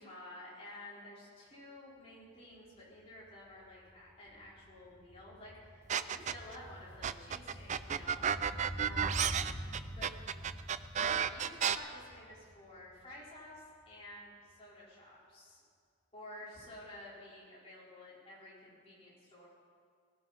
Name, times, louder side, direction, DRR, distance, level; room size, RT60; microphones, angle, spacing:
voice 1, 0.0-9.4 9.8-10.1 10.9-15.6 16.1-19.5, left 1 dB, 25° left, -8 dB, 4.9 m, -52 dB
sound 1, 2.6-2.7 2.9-13.3 13.5-13.6, equal, 50° right, 2.6 m, -47 dB
sound 2, 5.9-6.6 7.0-11.8, right 8 dB, 30° right, 0.3 m, -32 dB
19.5 x 15.5 x 4.5 m, 2.2 s
head